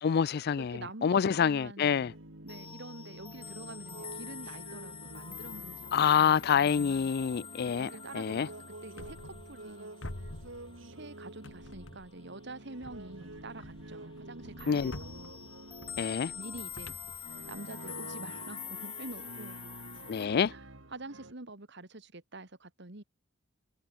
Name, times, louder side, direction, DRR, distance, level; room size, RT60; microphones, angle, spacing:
voice 1, 0.0-2.1 5.9-8.5 14.7-14.9 16.0-16.3 20.1-20.5, left 7 dB, 55° left, 0.4 m, -27 dB
voice 2, 0.6-2.0 2.4-7.1 7.8-8.6 8.8-9.9 10.9-15.3 16.3-17.0 17.4-19.6 20.5-23.0, right 2 dB, 65° right, 2.4 m, -47 dB
w krainie życia będę widział Boga, 1.8-21.3, right 2 dB, 85° right, 3.7 m, -49 dB
sound 1, 2.5-12.9 13.1-13.5 13.8-20.3, left 7 dB, 25° left, 7.4 m, -46 dB
sound 2, 9.0-9.7 10.0-11.1 11.4-12.3 12.8-17.9, left 1 dB, 70° left, 2.2 m, -48 dB
head